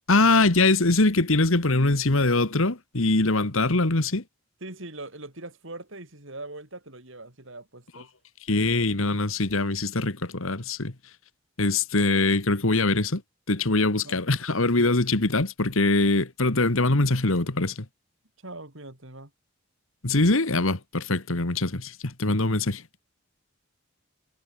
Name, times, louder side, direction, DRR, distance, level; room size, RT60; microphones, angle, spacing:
voice 1, 0.1-4.2 8.5-10.9 11.6-13.2 13.5-17.9 20.0-22.8, left 2 dB, 70° left, 1.9 m, -23 dB
voice 2, 4.6-8.1 13.9-14.2 18.4-19.3, right 2 dB, 60° right, 4.2 m, -41 dB
head